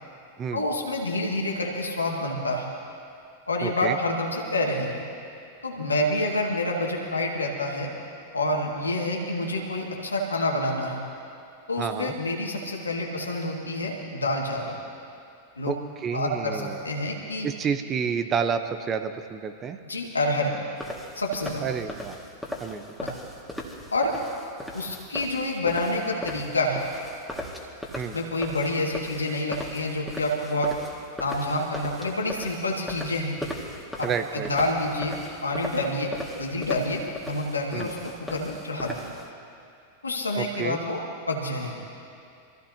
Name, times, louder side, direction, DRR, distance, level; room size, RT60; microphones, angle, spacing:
voice 1, 0.5-2.7 3.5-5.0 5.6-7.9 8.3-11.0 11.7-14.8 15.6-15.7 16.1-17.5 19.8-20.5 21.2-21.6 23.0-23.1 23.9-24.1 24.7-26.8 28.1-30.7 31.2-33.4 34.0-34.1 34.3-35.2 35.4-36.1 36.4-39.0 40.0-41.0 41.3-41.8, left 1 dB, 85° left, -1 dB, 2.1 m, -28 dB
voice 2, 3.6-4.0 11.8-12.1 15.7-16.8 17.4-19.8 21.6-22.2 22.6-23.0 27.9-28.2 34.0-34.5 37.7-37.9 40.4-40.8, right 6 dB, 30° right, 8 dB, 0.9 m, -29 dB
sound 1, 20.8-39.3, left 1 dB, ahead, 2.1 m, -39 dB
25.0 x 15.5 x 2.9 m, 2.5 s
figure-of-eight pair, 95°, 0 cm